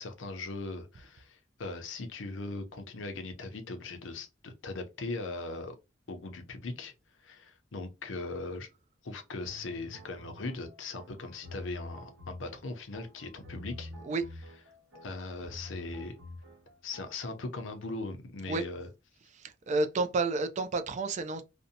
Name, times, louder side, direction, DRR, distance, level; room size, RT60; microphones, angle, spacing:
voice 1, 0.0-5.8 6.1-6.9 7.2-8.7 9.0-13.9 15.0-16.1 16.8-18.9, left 3 dB, 80° left, 0.6 m, -39 dB
sound 1, 9.4-17.3, left 2 dB, 70° right, 1.0 m, -47 dB
voice 2, 19.3-21.4, right 3 dB, 40° right, 0.3 m, -30 dB
2.6 x 2.1 x 2.7 m
head